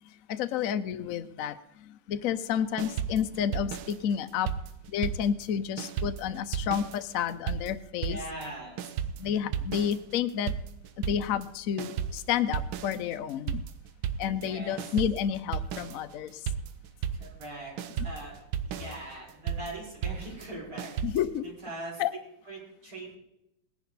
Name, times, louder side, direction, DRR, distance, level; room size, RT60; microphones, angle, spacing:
voice 1, 0.3-1.6 1.9-4.5 4.9-8.2 9.2-10.5 11.1-13.6 14.2-16.3 21.0-21.4 22.0-22.1, left 9 dB, 75° left, 10 dB, 0.7 m, -30 dB
sound 1, 2.8-5.5 5.8-21.4, right 8 dB, 75° right, 1.5 m, -35 dB
voice 2, 8.0-9.8 14.4-14.9 17.2-17.7 18.0-18.4 18.6-22.0 22.4-23.2, right 2 dB, 90° right, -5 dB, 6.5 m, -42 dB
19.0 x 10.5 x 4.1 m, 0.82 s
omnidirectional pair, 2.3 m